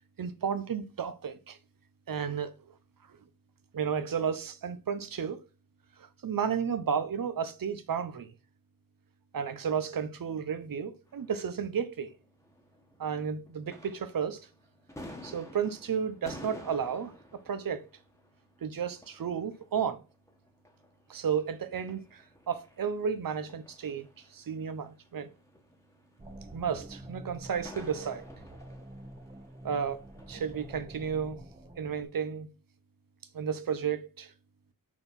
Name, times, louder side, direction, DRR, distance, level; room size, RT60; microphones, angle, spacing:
voice 1, 0.2-1.6 2.1-2.5 3.7-5.4 6.2-8.3 9.3-12.1 13.0-14.4 15.2-17.1 17.5-17.8 18.6-20.0 21.1-24.1 24.3-25.3 26.5-28.2 29.6-30.0 30.3-31.4 31.8-32.5 33.3-34.3, right 7 dB, 70° right, 1.0 m, -32 dB
sound 1, 11.1-13.2 13.5-30.8, left 1 dB, 10° left, 1.3 m, -52 dB
sound 2, 26.2-32.0, right 1 dB, 20° right, 1.1 m, -47 dB
6.0 x 4.5 x 5.9 m
wide cardioid pair, 155°, 36 cm